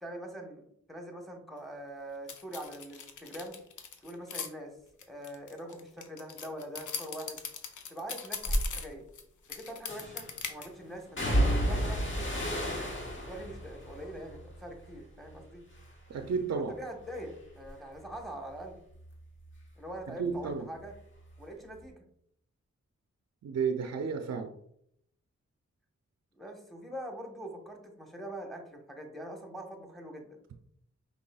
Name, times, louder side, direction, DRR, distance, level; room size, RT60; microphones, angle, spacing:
voice 1, 0.0-3.6 4.0-4.8 5.1-7.4 7.9-9.0 9.5-12.3 13.2-15.6 16.6-18.8 19.8-20.9 21.4-22.1 26.3-30.4, right 1 dB, ahead, 2 dB, 1.1 m, -43 dB
sound 1, 2.3-4.5 5.0-9.2 9.5-10.7, left 6 dB, 85° left, 0.6 m, -40 dB
sound 2, 8.4-8.7 9.9-10.4 11.2-15.4 15.7-16.3 16.7-20.0 20.3-21.4 21.7-21.8, equal, 40° left, 1.3 m, -33 dB
voice 2, 16.1-16.7 20.1-20.6 23.4-24.5, right 5 dB, 60° right, 6 dB, 0.5 m, -32 dB
5.4 x 3.4 x 2.3 m, 0.71 s
cardioid pair, 55°, 29 cm